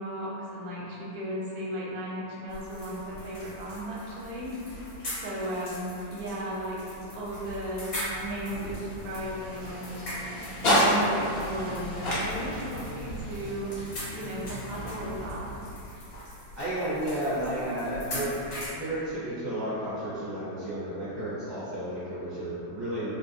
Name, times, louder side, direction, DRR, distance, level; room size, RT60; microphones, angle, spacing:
voice 1, 0.0-7.9 8.2-9.9 10.6-13.8 14.1-15.5, equal, 90° right, -5 dB, 1.5 m, -35 dB
sound 1, 2.5-18.7, left 1 dB, 45° left, 1.3 m, -41 dB
sound 2, 7.7-15.9, equal, 65° left, 0.6 m, -31 dB
voice 2, 16.6-18.3 18.7-23.1, right 1 dB, 25° left, -14 dB, 0.7 m, -32 dB
3.7 x 2.3 x 2.6 m, 2.8 s
omnidirectional pair, 2.1 m